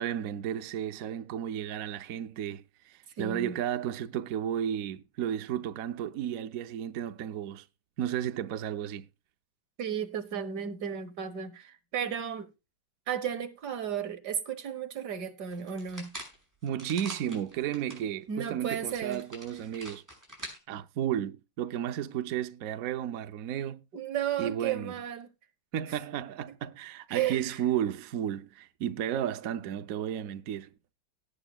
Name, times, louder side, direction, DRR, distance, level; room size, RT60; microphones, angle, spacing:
voice 1, 0.0-7.7 8.0-9.1 16.6-20.0 20.7-23.8 24.4-24.9 25.7-30.7, right 10 dB, 75° right, 0.8 m, -33 dB
voice 2, 3.2-3.6 9.8-12.5 13.1-16.1 18.3-19.2 23.9-25.3 25.9-26.0 27.1-27.6, right 9 dB, 55° right, 1.7 m, -34 dB
sound 1, 15.5-18.0 18.5-18.6 18.9-20.6, equal, 10° right, 6.0 m, -45 dB
18.0 x 9.0 x 2.3 m
omnidirectional pair, 2.3 m